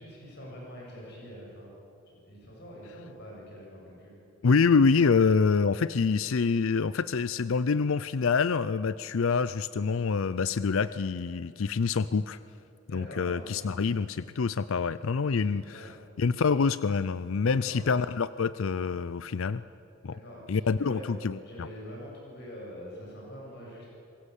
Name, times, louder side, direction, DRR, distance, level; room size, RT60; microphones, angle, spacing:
voice 1, 0.0-1.7 2.1-4.1 12.9-13.9 15.3-15.9 17.5-17.8 20.1-21.1 21.4-23.9, equal, 50° left, -3 dB, 7.8 m, -45 dB
voice 2, 4.4-12.4 12.9-19.6 20.0-20.2 20.5-21.7, left 5 dB, 70° left, 15 dB, 0.5 m, -26 dB
26.5 x 22.0 x 8.3 m, 2.7 s
head